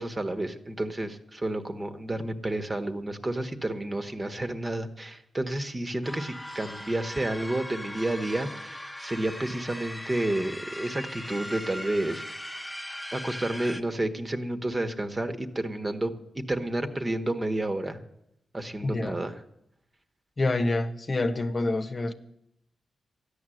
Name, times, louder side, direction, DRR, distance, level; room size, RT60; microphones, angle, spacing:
voice 1, 0.0-12.4 13.1-18.0 18.5-19.4, right 1 dB, 30° right, 1.4 m, -30 dB
sound 1, 6.0-13.8, left 1 dB, 5° left, 1.1 m, -39 dB
voice 2, 18.8-19.2 20.4-22.1, left 2 dB, 40° left, 1.1 m, -27 dB
13.5 x 10.0 x 7.8 m
cardioid pair, 60°, 0 cm